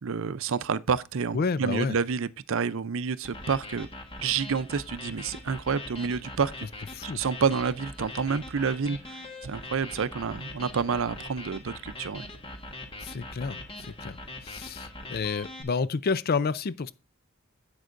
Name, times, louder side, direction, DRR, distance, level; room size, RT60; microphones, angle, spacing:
voice 1, 0.0-3.9 4.2-6.7 7.0-12.3, right 6 dB, 60° right, 0.5 m, -29 dB
voice 2, 1.3-2.0 6.9-7.2 13.0-16.9, left 4 dB, 45° left, 0.4 m, -30 dB
sound 1, 3.2-15.6, left 2 dB, 25° left, 1.4 m, -42 dB
11.0 x 8.1 x 2.5 m
head